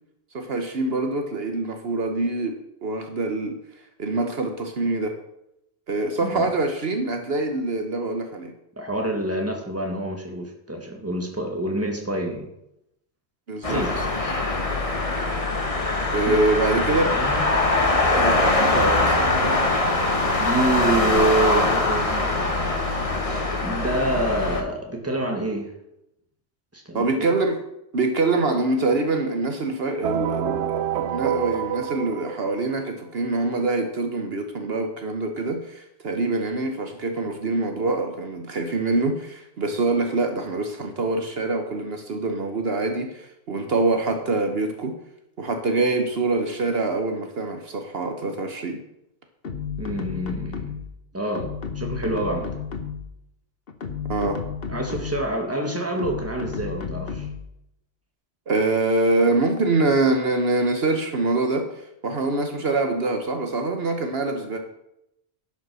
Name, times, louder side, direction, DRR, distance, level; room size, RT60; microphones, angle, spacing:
voice 1, 0.3-3.6 4.0-5.1 5.9-8.5 13.5-13.8 16.1-17.1 18.2-19.7 26.9-27.6 27.9-44.9 45.4-48.8 54.1-54.4 58.5-64.6, right 2 dB, 65° right, 5 dB, 1.3 m, -25 dB
voice 2, 8.8-12.5 13.6-13.9 16.3-16.4 16.8-17.5 20.4-22.6 23.6-25.7 26.7-27.3 49.8-50.7 51.1-52.5 54.7-57.3, right 1 dB, 15° right, 2 dB, 1.7 m, -27 dB
sound 1, 13.6-24.6, left 2 dB, 30° left, 1.4 m, -22 dB
sound 2, 30.0-32.9, right 9 dB, 85° right, 0.9 m, -27 dB
sound 3, 49.4-51.0 51.4-53.2 53.7-55.3 56.0-57.5, left 6 dB, 60° left, 1.2 m, -32 dB
11.0 x 6.0 x 6.2 m, 0.83 s
omnidirectional pair, 1.1 m